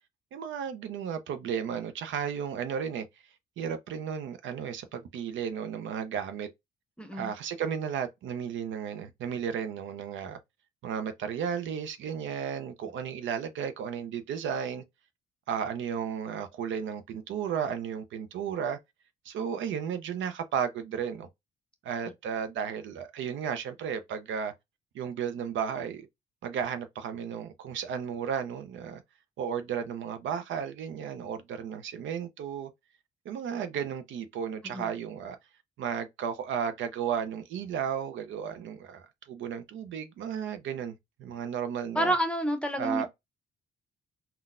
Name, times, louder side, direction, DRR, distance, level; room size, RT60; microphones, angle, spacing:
voice 1, 0.3-3.1 3.6-6.5 7.1-10.4 10.8-14.8 15.5-18.8 19.2-21.3 21.8-24.5 24.9-26.1 26.4-29.0 29.4-32.7 33.3-35.4 35.8-42.2 42.8-43.1, right 7 dB, 75° right, 0.6 m, -34 dB
voice 2, 7.0-7.3 34.7-34.9 41.9-43.1, right 1 dB, 5° left, 0.7 m, -29 dB
3.8 x 2.2 x 2.4 m
cardioid pair, 90°, 20 cm